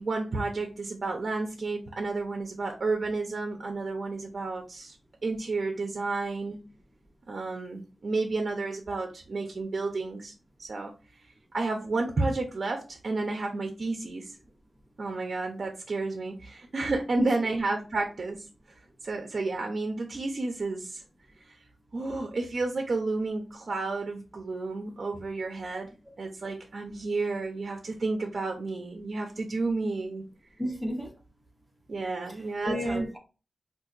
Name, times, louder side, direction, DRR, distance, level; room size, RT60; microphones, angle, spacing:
voice 1, 0.0-5.0 5.2-6.6 7.3-10.3 10.6-10.9 11.5-14.4 15.0-18.5 19.0-21.0 21.4-21.6 21.9-25.9 26.2-30.2 31.9-33.0, right 3 dB, 50° right, 0.4 m, -31 dB
voice 2, 17.2-17.5 30.6-31.1 32.3-33.2, equal, 5° left, 0.6 m, -32 dB
3.7 x 2.5 x 2.3 m
wide cardioid pair, 155°, 0 cm